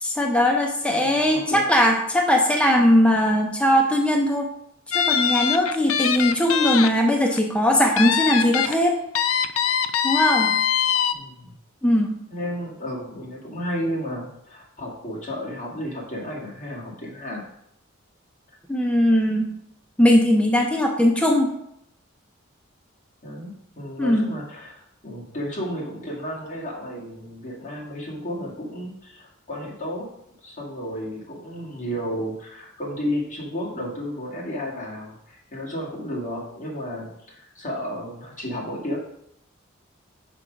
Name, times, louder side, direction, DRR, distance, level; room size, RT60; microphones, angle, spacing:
voice 1, 0.0-4.5 4.9-9.0 10.0-10.6 11.8-12.2 18.7-19.6 20.0-21.5 24.0-24.3, equal, 5° left, 1 dB, 0.6 m, -19 dB
voice 2, 0.9-1.7 11.1-11.5 12.3-17.4 23.2-30.1 30.4-39.0, equal, 40° left, -3 dB, 2.0 m, -32 dB
sound 1, 4.9-6.9 7.3-7.4 8.0-8.7 9.1-11.1, left 8 dB, 90° left, 0.5 m, -22 dB
6.0 x 4.7 x 5.1 m, 0.76 s
head